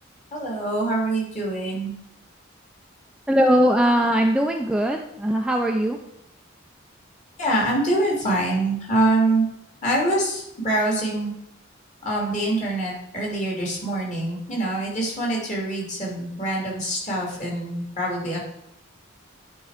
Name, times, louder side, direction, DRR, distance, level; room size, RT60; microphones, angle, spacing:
voice 1, 0.3-1.9 7.4-9.4 9.8-11.3 12.0-18.5, right 1 dB, 35° left, -3 dB, 2.9 m, -24 dB
voice 2, 3.3-6.0, equal, 5° right, 2 dB, 0.4 m, -20 dB
10.5 x 4.6 x 5.0 m, 0.78 s
head